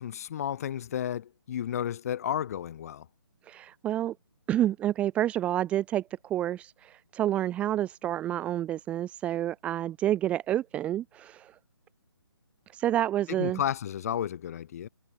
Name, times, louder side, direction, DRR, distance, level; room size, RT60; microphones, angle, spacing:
voice 1, 0.0-3.1 13.3-14.9, left 10 dB, 35° left, 3.4 m, -32 dB
voice 2, 3.5-4.1 4.5-11.5 12.7-13.6, right 12 dB, 10° right, 0.8 m, -29 dB
hypercardioid pair, 155°, 13 cm